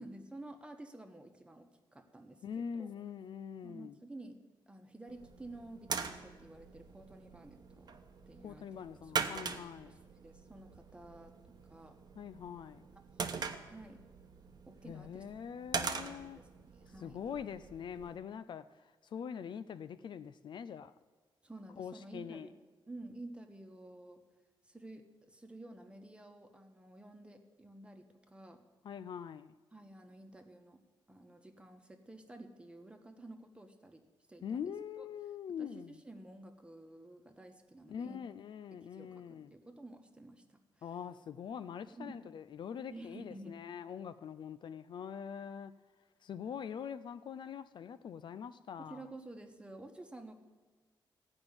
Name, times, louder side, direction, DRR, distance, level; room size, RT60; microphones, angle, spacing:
voice 1, 0.0-2.9 3.6-4.4 4.7-7.9 8.3-8.7 9.0-9.5 9.9-11.4 11.7-12.0 13.7-14.0 14.7-15.2 15.7-16.5 16.7-17.2 21.4-22.5 22.9-24.2 24.6-28.6 29.7-30.8 31.1-34.0 34.3-35.0 35.6-38.2 38.7-40.9 41.9-42.2 42.9-43.6 48.8-50.4, right 2 dB, 10° right, 1.2 m, -51 dB
voice 2, 2.4-4.0 8.4-9.9 12.2-12.9 14.8-16.4 17.0-20.9 21.8-22.5 28.8-29.5 34.4-36.0 37.9-39.5 40.8-45.7 46.2-49.1, left 7 dB, 60° left, 0.4 m, -43 dB
sound 1, 5.1-18.2, right 5 dB, 50° right, 0.9 m, -43 dB
15.0 x 5.3 x 9.6 m
wide cardioid pair, 120°, 9 cm